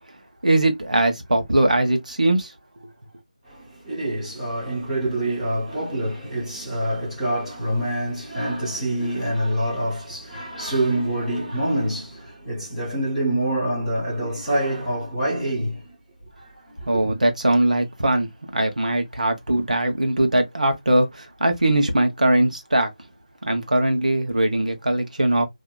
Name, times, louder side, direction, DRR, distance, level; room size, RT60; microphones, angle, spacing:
voice 1, 0.4-2.5 16.9-22.9 23.4-25.5, right 1 dB, 70° right, 1.0 m, -21 dB
voice 2, 3.4-16.0 16.2-16.9, right 1 dB, ahead, 0.6 m, -26 dB
2.8 x 2.5 x 2.2 m
figure-of-eight pair, 180°, 4 cm